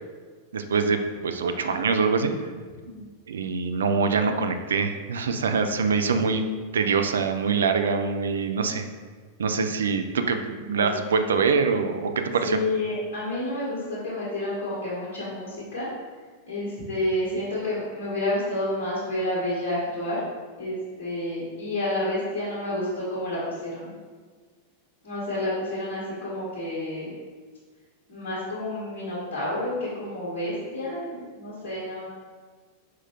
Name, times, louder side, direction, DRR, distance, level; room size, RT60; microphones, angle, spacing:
voice 1, 0.5-2.3 3.3-6.4 6.7-8.8 9.4-12.6, right 5 dB, 65° right, 7 dB, 0.3 m, -24 dB
voice 2, 10.5-10.9 12.4-15.9 16.4-20.2 20.6-23.9 25.0-27.1 28.1-32.1, left 1 dB, 50° left, -9 dB, 1.4 m, -30 dB
4.6 x 3.7 x 2.8 m, 1.5 s
figure-of-eight pair, 90°, 0 cm